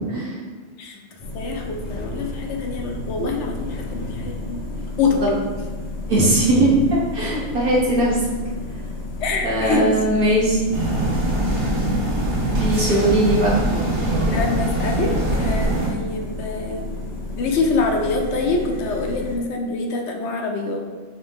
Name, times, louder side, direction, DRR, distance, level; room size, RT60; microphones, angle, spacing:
voice 1, 0.8-4.6 5.0-5.2 9.2-9.9 14.3-16.9 17.4-20.8, left 3 dB, 75° left, 3 dB, 0.9 m, -25 dB
sound 1, 1.2-19.4, left 2 dB, 50° left, 0.5 m, -32 dB
voice 2, 6.1-8.2 9.4-10.6 11.5-11.7 12.6-13.6, right 1 dB, 50° right, -6 dB, 1.2 m, -19 dB
sound 2, 10.7-15.9, right 1 dB, 70° right, 1.3 m, -22 dB
4.1 x 2.7 x 3.5 m, 1.4 s
omnidirectional pair, 1.2 m